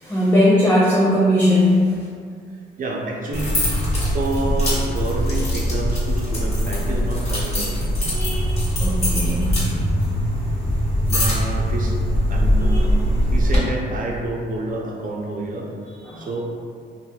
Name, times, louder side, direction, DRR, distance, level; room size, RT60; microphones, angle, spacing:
voice 1, 0.0-1.9 8.1-9.6 12.6-12.8 16.1-16.3, left 1 dB, 10° left, -6 dB, 0.4 m, -19 dB
voice 2, 2.8-3.7 4.1-8.2 10.9-12.0 12.3-15.7 16.2-16.4, right 2 dB, 45° right, -1 dB, 0.5 m, -28 dB
sound 1, 3.3-13.6, equal, 30° left, 1.1 m, -21 dB
3.0 x 2.5 x 2.3 m, 2.2 s
cardioid pair, 90°, 20 cm